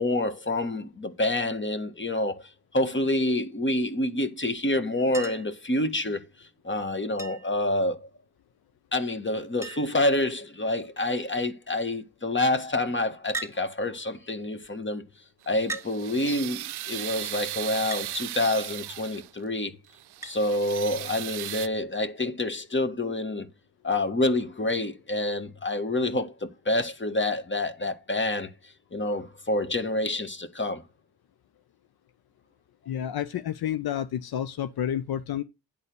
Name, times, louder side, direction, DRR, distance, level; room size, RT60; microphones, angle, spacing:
voice 1, 0.0-8.1 8.9-15.0 15.5-19.7 20.2-23.5 23.8-30.8, left 1 dB, 30° left, 1.5 m, -28 dB
Chink clink, 5.1-5.6 7.2-7.6 9.0-9.1 9.3-9.4 9.6-10.1 10.8-11.2 13.3-13.6 14.6-14.7 15.7-15.9 17.9-18.1 20.2-20.4 21.8-21.9, right 4 dB, 5° right, 2.1 m, -37 dB
sound 1, 15.4-19.4 19.9-21.7, right 15 dB, 85° right, 0.5 m, -37 dB
voice 2, 32.9-35.4, left 10 dB, 70° left, 0.7 m, -30 dB
10.5 x 4.1 x 6.8 m
supercardioid pair, 40°, 38 cm